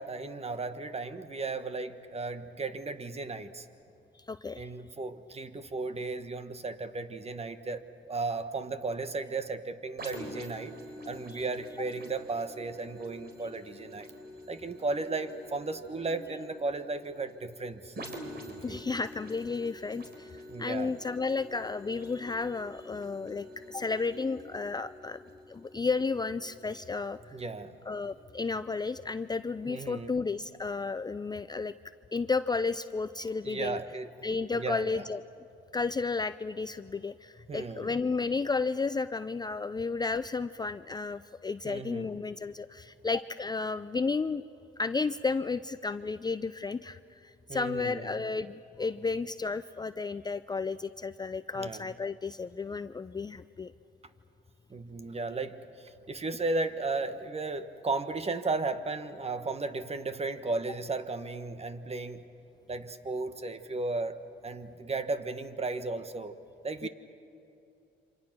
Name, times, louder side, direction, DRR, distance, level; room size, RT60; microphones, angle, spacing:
voice 1, 0.0-3.7 4.5-10.7 11.0-14.1 14.5-17.9 18.7-18.8 20.5-21.0 27.3-27.8 29.7-30.1 33.4-34.1 34.5-35.1 37.5-38.0 41.6-42.1 47.5-48.1 51.5-51.9 54.7-62.2 62.7-66.3 66.6-66.9, right 3 dB, 30° right, 10 dB, 1.4 m, -35 dB
voice 2, 4.3-4.6 11.3-11.4 18.6-20.3 20.6-25.2 25.5-27.2 27.9-31.7 32.1-33.8 34.2-35.2 35.7-44.4 44.8-53.7 66.8-66.9, left 4 dB, 20° left, 12 dB, 0.5 m, -32 dB
sound 1, 10.0-27.5 28.0-28.2, equal, 55° right, 3.9 m, -47 dB
28.0 x 25.5 x 6.1 m, 2.8 s
cardioid pair, 90°, 20 cm